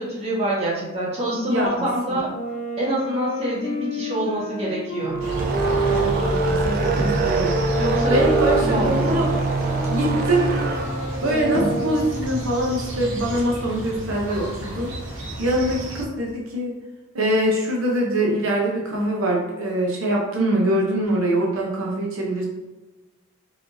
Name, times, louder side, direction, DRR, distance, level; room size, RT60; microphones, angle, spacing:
voice 1, 0.0-2.3 2.8-5.2 7.8-8.2 8.7-9.0, right 1 dB, 30° right, -7 dB, 1.5 m, -25 dB
voice 2, 1.4-1.7 2.1-2.2 5.9-7.5 8.1-9.3 9.9-10.5 11.2-14.9 15.4-16.7 17.1-22.4, right 1 dB, 80° right, -2 dB, 0.8 m, -23 dB
Wind instrument woodwind instrument, 2.3-12.3, right 2 dB, 35° left, 0.6 m, -28 dB
sound 1, 5.0-12.4, right 2 dB, 45° right, 0.4 m, -25 dB
sound 2, 5.2-16.0, right 1 dB, 65° right, 1.2 m, -32 dB
4.6 x 3.5 x 2.7 m, 1.1 s
head